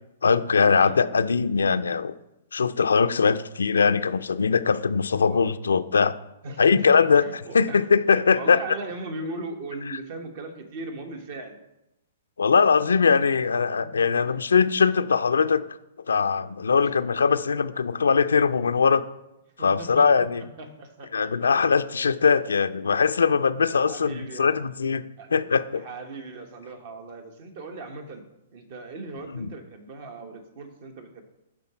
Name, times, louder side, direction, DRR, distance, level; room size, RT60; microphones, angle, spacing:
voice 1, 0.2-2.1 2.5-6.1 6.6-8.6 12.4-15.6 16.1-19.0 19.6-20.4 21.1-25.0 25.3-25.8 29.3-29.5, left 5 dB, 90° left, 12 dB, 0.4 m, -21 dB
voice 2, 6.4-6.8 7.1-7.9 8.1-11.6 13.8-13.9 14.2-14.4 16.8-16.9 19.6-20.1 20.4-21.3 21.6-21.7 23.8-24.6 25.2-25.3 25.7-28.2 28.5-31.2, right 2 dB, 55° right, 5 dB, 1.4 m, -38 dB
11.5 x 3.8 x 4.4 m, 0.91 s
hypercardioid pair, 130°, 0 cm